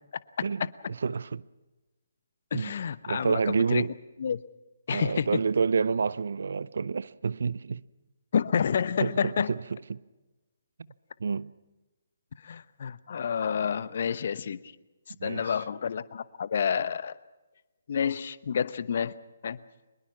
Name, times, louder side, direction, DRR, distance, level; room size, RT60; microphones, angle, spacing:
voice 1, 0.9-1.4 2.5-2.7 3.1-3.9 4.9-7.8 9.0-9.6 9.9-10.0 11.2-11.5 15.2-15.6, right 5 dB, 65° right, 0.6 m, -28 dB
voice 2, 2.5-3.8 4.2-4.4 4.9-5.4 8.3-9.5 12.4-14.6 15.1-17.2 17.9-19.1 19.4-19.6, left 7 dB, 50° left, 0.9 m, -29 dB
24.5 x 21.0 x 5.9 m
figure-of-eight pair, 140°, 0 cm